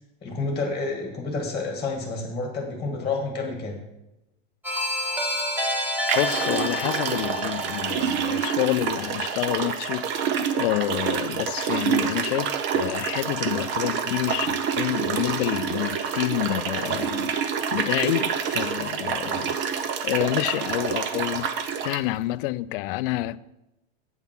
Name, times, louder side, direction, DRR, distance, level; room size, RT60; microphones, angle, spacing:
voice 1, 0.2-3.8, left 3 dB, 15° left, 1.6 m, -29 dB
sound 1, 4.6-9.4, left 1 dB, 5° right, 1.9 m, -30 dB
sound 2, 5.3-5.4 6.1-22.0, right 7 dB, 40° right, 1.0 m, -27 dB
voice 2, 6.1-10.1 10.5-17.3 17.7-19.6 20.0-21.5 21.8-23.4, left 16 dB, 65° left, 0.5 m, -28 dB
8.3 x 7.3 x 5.9 m
supercardioid pair, 140°, 29 cm